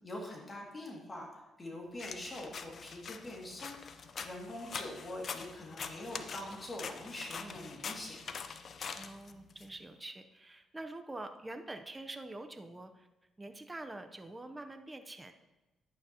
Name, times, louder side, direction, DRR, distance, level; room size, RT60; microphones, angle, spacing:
voice 1, 0.0-8.2, left 1 dB, 25° left, -1 dB, 2.2 m, -44 dB
sound 1, 2.0-9.7, left 5 dB, 50° left, 0.6 m, -44 dB
voice 2, 9.0-13.1 13.4-15.3, right 2 dB, 15° right, 7 dB, 0.7 m, -46 dB
11.0 x 8.8 x 2.9 m, 1.1 s
cardioid pair, 90°, 0 cm